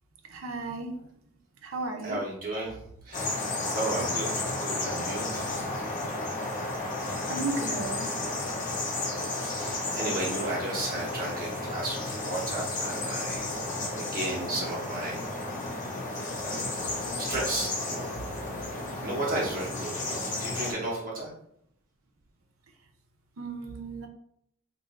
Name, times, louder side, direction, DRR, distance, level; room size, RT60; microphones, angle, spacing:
voice 1, 0.3-0.9 1.6-2.2 7.3-8.1 23.4-24.1, right 3 dB, 90° right, 4 dB, 0.6 m, -34 dB
voice 2, 2.0-2.8 3.0-3.4 3.7-5.8 9.3-15.2 16.4-16.7 17.2-18.2 19.0-21.3, right 1 dB, 45° right, -5 dB, 0.8 m, -34 dB
sound 1, 3.1-20.7, left 2 dB, 40° left, 0.7 m, -33 dB
2.6 x 2.5 x 4.0 m, 0.72 s
head